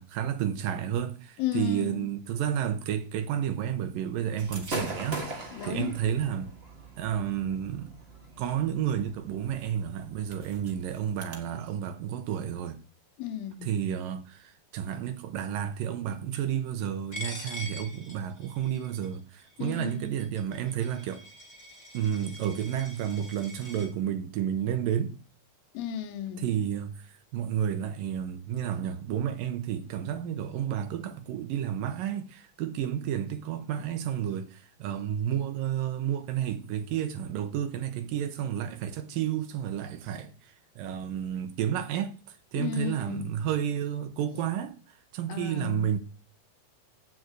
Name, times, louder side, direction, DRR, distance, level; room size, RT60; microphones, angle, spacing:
voice 1, 0.0-6.5 7.0-8.0 8.4-12.8 13.6-21.2 21.9-25.2 26.4-40.3 40.8-42.2 42.5-44.8 45.1-46.0, right 9 dB, 75° right, 2.5 m, -31 dB
voice 2, 1.4-2.1 5.5-6.0 13.2-13.7 19.6-20.1 25.7-26.5 42.6-43.3 45.3-45.9, left 10 dB, 80° left, 2.6 m, -34 dB
Gunshot gunfire / Fireworks, 4.4-11.4, right 2 dB, 55° right, 0.6 m, -41 dB
Coin (dropping), 17.1-23.9, left 1 dB, 15° left, 2.3 m, -44 dB
7.7 x 7.2 x 8.1 m
omnidirectional pair, 4.2 m